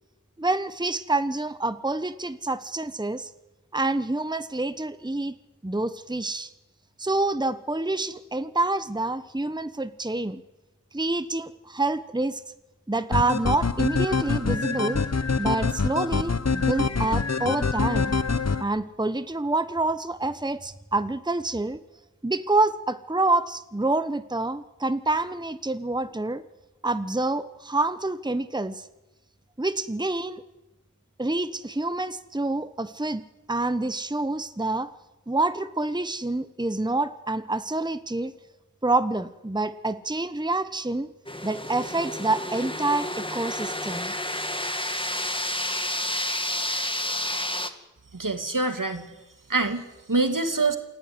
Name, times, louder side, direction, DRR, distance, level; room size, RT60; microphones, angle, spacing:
voice 1, 0.4-3.3 3.7-5.3 5.6-6.5 7.0-10.4 10.9-12.4 12.9-15.0 15.4-18.1 18.6-21.8 22.2-26.4 26.8-28.9 29.6-30.4 31.2-34.9 35.3-38.3 38.8-41.1 41.4-44.1, right 2 dB, 15° right, 12 dB, 1.1 m, -27 dB
sound 1, 13.1-18.6, left 4 dB, 50° left, 1.1 m, -25 dB
sound 2, 41.3-47.7, left 1 dB, 15° left, 2.1 m, -30 dB
voice 2, 48.1-49.1 49.5-50.8, right 3 dB, 75° right, 7 dB, 2.7 m, -25 dB
27.5 x 17.0 x 9.8 m, 1.0 s
wide cardioid pair, 45°, 33 cm